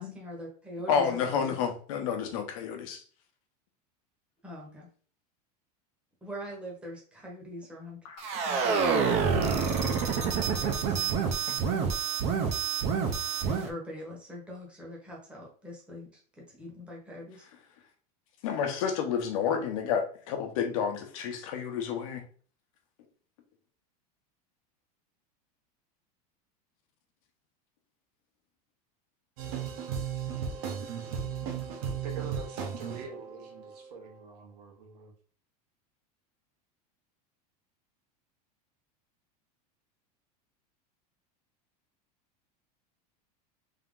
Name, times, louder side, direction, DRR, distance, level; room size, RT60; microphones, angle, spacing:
voice 1, 0.0-1.6 4.4-4.9 6.2-8.0 8.3-11.2 13.4-17.4, equal, 5° right, -2 dB, 1.0 m, -43 dB
voice 2, 0.9-3.0 8.0-8.2 11.5-11.6 18.4-22.2, left 7 dB, 60° left, 4 dB, 0.9 m, -30 dB
sound 1, 8.2-13.7, right 5 dB, 30° right, 0.6 m, -27 dB
sound 2, 29.4-33.9, right 7 dB, 65° right, 1.1 m, -35 dB
voice 3, 32.0-35.1, right 4 dB, 80° right, 1 dB, 1.5 m, -45 dB
3.7 x 2.9 x 3.6 m, 0.42 s
supercardioid pair, 170°, 20 cm